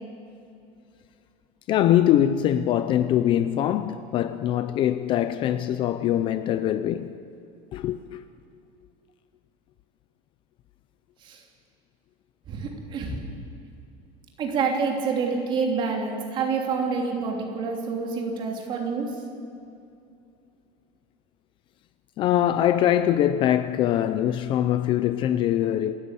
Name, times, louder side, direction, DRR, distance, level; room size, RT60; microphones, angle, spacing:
voice 1, 1.7-7.1 7.7-8.2 22.2-26.0, left 11 dB, 30° left, 0.5 m, -23 dB
voice 2, 12.5-13.3 14.4-19.1, right 5 dB, 30° right, 3.2 m, -27 dB
27.5 x 14.0 x 8.4 m
cardioid pair, 175°, 16 cm